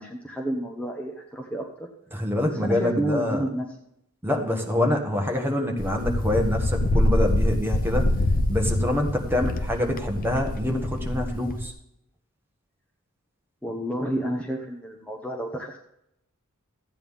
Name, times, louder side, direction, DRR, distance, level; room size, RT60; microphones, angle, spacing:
voice 1, 0.0-1.6 2.5-3.7 9.3-9.6 13.6-15.8, right 1 dB, 5° left, 1 dB, 1.0 m, -30 dB
voice 2, 2.1-3.4 4.2-8.1 8.5-11.7, left 1 dB, 10° right, 2 dB, 1.3 m, -25 dB
Wind, 5.8-11.7, left 1 dB, 40° left, 0.7 m, -25 dB
14.0 x 9.0 x 3.6 m, 0.79 s
head